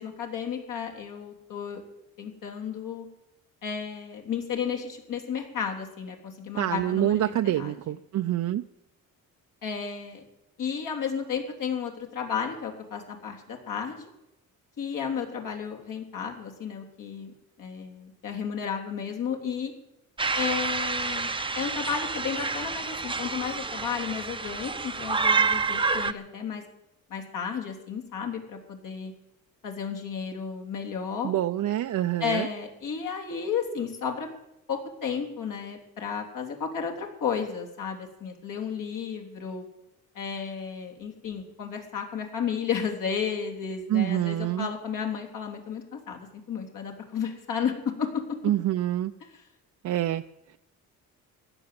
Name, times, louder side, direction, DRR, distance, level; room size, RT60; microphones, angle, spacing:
voice 1, 0.0-1.8 2.2-3.1 3.6-8.0 9.6-10.2 10.6-14.1 14.8-17.3 17.6-19.7 20.4-21.3 21.6-26.6 27.1-29.1 29.6-31.3 32.2-34.3 34.7-39.6 40.2-48.4 49.3-49.4, left 7 dB, 65° left, 2 dB, 3.5 m, -33 dB
voice 2, 6.6-8.6 31.2-32.5 43.9-44.7 48.4-49.1 49.8-50.2, right 13 dB, 55° right, 7 dB, 0.6 m, -26 dB
sound 1, 20.2-26.1, right 4 dB, 15° right, 0.7 m, -28 dB
16.0 x 11.0 x 7.7 m, 0.89 s
cardioid pair, 115°, 35 cm